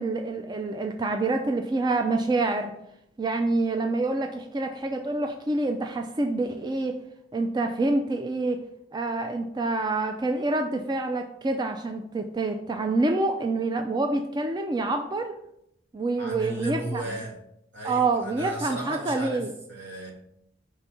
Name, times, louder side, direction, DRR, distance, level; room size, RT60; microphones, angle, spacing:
voice 1, 0.0-2.7 3.2-7.0 7.3-8.6 8.9-15.4 15.9-17.0 17.8-19.5, right 2 dB, 25° right, 5 dB, 0.4 m, -27 dB
voice 2, 16.2-17.3 17.7-20.1, right 1 dB, 70° right, -2 dB, 1.9 m, -35 dB
5.6 x 3.5 x 5.8 m, 0.77 s
head